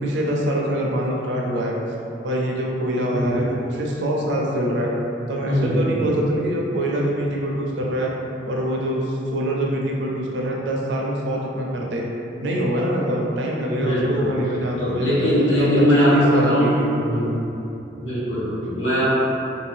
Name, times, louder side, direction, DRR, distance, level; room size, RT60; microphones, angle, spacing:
voice 1, 0.0-1.8 2.2-4.9 5.3-8.1 8.5-12.0 12.4-16.9, right 1 dB, 65° right, -2 dB, 0.5 m, -24 dB
voice 2, 3.1-3.4 5.5-5.8 13.8-14.3 14.8-16.7 17.0-17.5 18.0-19.2, equal, 85° left, -11 dB, 1.2 m, -20 dB
2.7 x 2.3 x 3.3 m, 2.8 s
head